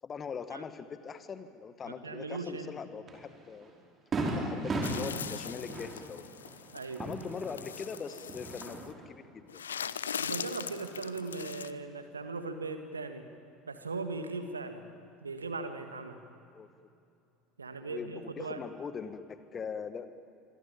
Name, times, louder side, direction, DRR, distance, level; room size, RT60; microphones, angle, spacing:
voice 1, 0.0-3.7 4.3-6.3 7.0-9.6 16.5-16.7 17.8-20.1, left 6 dB, 30° left, 11 dB, 1.8 m, -41 dB
voice 2, 1.9-2.7 6.7-7.1 10.2-13.3 13.7-14.9 15.2-16.2 17.6-18.6, right 3 dB, 80° right, 8 dB, 1.8 m, -39 dB
Fireworks, 3.1-3.2 3.6-3.7 4.1-7.9 8.2-9.1, right 2 dB, 30° right, 5.0 m, -36 dB
sound 1, 4.8-8.9 9.5-11.7, left 8 dB, 75° left, 0.7 m, -41 dB
26.5 x 24.0 x 9.1 m, 2.6 s
figure-of-eight pair, 70°, 0 cm